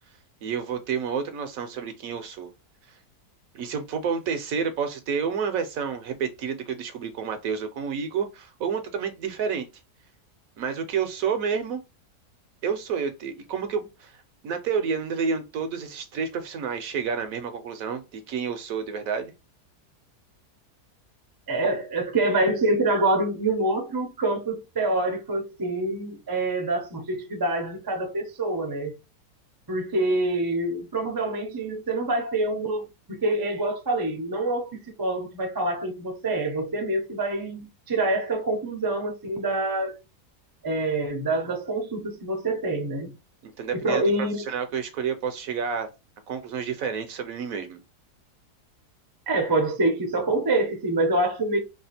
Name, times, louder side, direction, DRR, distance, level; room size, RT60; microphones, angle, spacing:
voice 1, 0.4-2.5 2.9-3.0 3.5-9.7 10.6-11.8 12.6-14.2 14.4-19.3 43.4-44.0 44.5-45.9 46.3-47.8, right 6 dB, 65° right, 0.9 m, -29 dB
voice 2, 21.5-28.9 29.7-40.0 40.6-43.1 43.7-44.4 49.3-51.6, right 2 dB, 30° right, 0.4 m, -26 dB
3.4 x 2.4 x 4.1 m
omnidirectional pair, 1.7 m